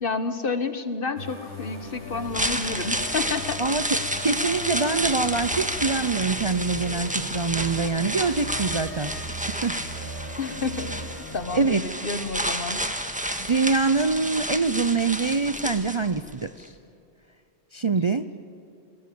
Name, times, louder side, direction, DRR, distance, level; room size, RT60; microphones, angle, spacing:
voice 1, 0.0-3.6 10.4-10.9 11.3-12.8, left 4 dB, 55° left, 10 dB, 1.5 m, -30 dB
sound 1, 1.2-12.0, equal, 85° left, 4.7 m, -38 dB
sound 2, 2.1-16.3 16.6-16.7, equal, 5° right, 1.6 m, -30 dB
voice 2, 4.2-9.1 9.6-9.8 11.5-11.8 13.4-16.7 17.7-18.3, right 4 dB, 35° right, 11 dB, 0.6 m, -24 dB
29.5 x 20.5 x 8.6 m, 2.6 s
omnidirectional pair, 1.1 m